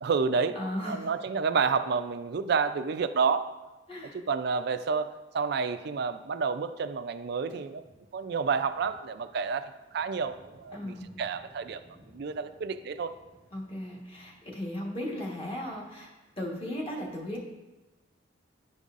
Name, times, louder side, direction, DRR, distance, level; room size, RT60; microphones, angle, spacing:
voice 1, 0.0-0.6 0.9-3.5 4.1-7.8 8.1-11.8 12.1-13.1, right 5 dB, 55° right, 11 dB, 0.4 m, -29 dB
voice 2, 0.5-1.1 3.9-4.2 10.7-11.1 13.5-17.4, left 1 dB, 30° left, -3 dB, 1.3 m, -36 dB
sound 1, 7.5-16.8, equal, 70° left, 2.6 m, -60 dB
11.0 x 5.3 x 2.5 m, 1.1 s
head